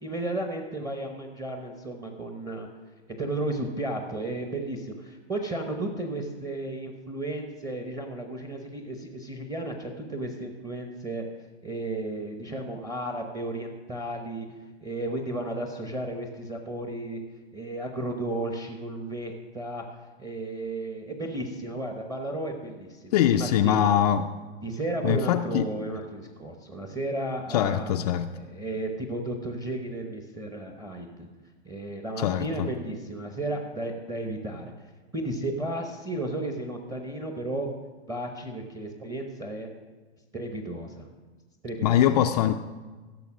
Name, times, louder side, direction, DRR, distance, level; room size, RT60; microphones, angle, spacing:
voice 1, 0.0-2.7 3.2-11.2 11.6-14.5 14.8-17.2 17.5-19.8 20.2-23.9 24.6-27.9 28.3-31.3 31.6-34.7 35.1-37.7 38.1-39.7 40.3-41.1 41.6-42.1, right 1 dB, 10° right, 3 dB, 0.9 m, -33 dB
voice 2, 23.1-24.2 25.0-25.7 27.5-28.3 32.2-32.7 41.8-42.5, left 10 dB, 35° left, 6 dB, 0.4 m, -23 dB
15.5 x 6.9 x 6.0 m, 1.3 s
hypercardioid pair, 140°, 34 cm